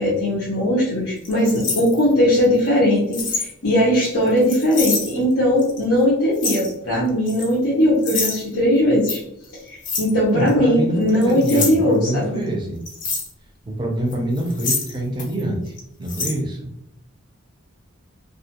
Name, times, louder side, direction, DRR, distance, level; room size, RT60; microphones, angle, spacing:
voice 1, 0.0-9.2 9.7-12.4, equal, 80° left, -7 dB, 0.7 m, -19 dB
sound 1, 1.2-2.4 3.1-3.5 3.9-5.1 5.6-5.8 6.3-6.7 7.3-7.5 8.0-8.4 9.1-9.2 9.8-10.1 10.5-10.6 11.1-11.7 12.9-13.3 14.1-15.4 15.7-15.8 16.1-16.3, left 4 dB, 35° left, 0.4 m, -26 dB
voice 2, 10.2-12.8 13.7-15.7 16.0-16.7, right 1 dB, 20° right, 0 dB, 0.5 m, -25 dB
2.3 x 2.3 x 2.8 m, 0.77 s
head